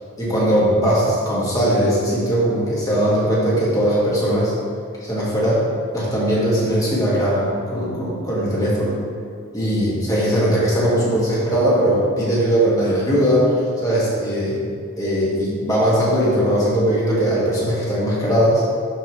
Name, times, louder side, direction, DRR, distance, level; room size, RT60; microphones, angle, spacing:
voice 1, 0.2-4.5 5.0-5.6 5.9-9.0 9.5-13.6 13.8-14.6 15.0-18.7, equal, 15° left, -7 dB, 1.9 m, -19 dB
11.5 x 5.0 x 3.1 m, 2.3 s
head